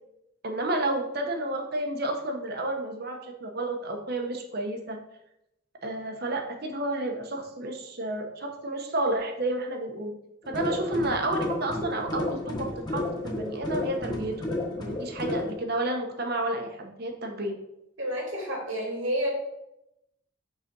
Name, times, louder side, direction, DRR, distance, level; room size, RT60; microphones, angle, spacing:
voice 1, 0.4-5.0 5.8-10.1 10.5-14.3 14.7-17.6, right 2 dB, 55° right, 3 dB, 1.0 m, -31 dB
sound 1, 10.4-15.5, left 2 dB, 20° left, 1.3 m, -32 dB
voice 2, 18.0-19.3, equal, 85° right, -2 dB, 2.8 m, -30 dB
5.6 x 4.1 x 6.0 m, 0.85 s
head